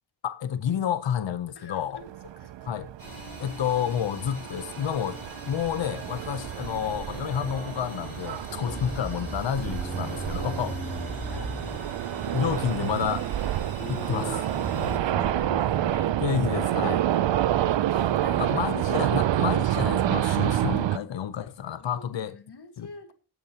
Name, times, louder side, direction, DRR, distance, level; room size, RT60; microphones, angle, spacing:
voice 1, 0.2-2.0 2.7-2.9 3.4-5.2 5.5-10.7 12.3-13.3 13.9-14.4 16.2-17.0 18.4-22.4 22.8-22.9, left 9 dB, 85° left, 0.8 m, -29 dB
voice 2, 1.6-2.5 6.4-6.5 8.6-8.8 10.4-10.5 11.2-11.5 14.1-14.3 14.7-16.2 17.0-18.7 21.7-23.1, left 3 dB, 65° left, 1.8 m, -44 dB
sound 1, 2.0-21.0, right 12 dB, 85° right, 0.5 m, -28 dB
sound 2, 3.0-15.0, equal, 55° right, 6.1 m, -43 dB
Bass guitar, 8.7-12.3 12.9-13.5 13.8-15.9, left 1 dB, 10° left, 1.6 m, -38 dB
16.0 x 8.7 x 2.9 m
cardioid pair, 45°, 43 cm